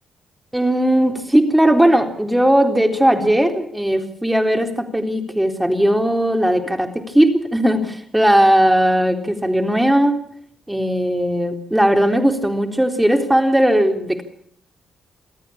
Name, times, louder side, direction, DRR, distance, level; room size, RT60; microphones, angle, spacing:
voice 1, 0.5-10.2 10.7-14.2, right 1 dB, 10° right, 4 dB, 3.8 m, -17 dB
27.5 x 13.5 x 8.7 m, 0.65 s
hypercardioid pair, 40°, 0 cm